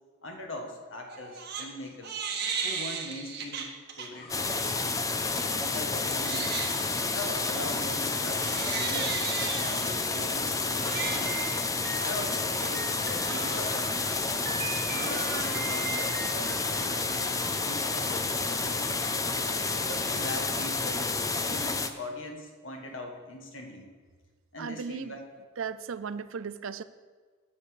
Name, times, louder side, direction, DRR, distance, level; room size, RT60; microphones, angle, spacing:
voice 1, 0.2-2.2 2.6-4.7 5.5-11.5 12.0-14.4 14.9-18.9 19.7-23.9 24.5-25.3, left 2 dB, 65° left, 3 dB, 1.7 m, -41 dB
Crying sobbing, 1.1-1.7 2.0-4.1 4.5-4.8 5.3-17.3, right 6 dB, 55° right, 1.3 m, -37 dB
sound 1, 4.1-20.2, left 1 dB, 45° left, 2.7 m, -47 dB
sound 2, 4.3-21.9, left 3 dB, 15° left, 0.5 m, -30 dB
voice 2, 24.6-25.1 25.6-26.8, right 6 dB, 70° right, 14 dB, 0.5 m, -36 dB
9.5 x 7.3 x 6.6 m, 1.5 s
head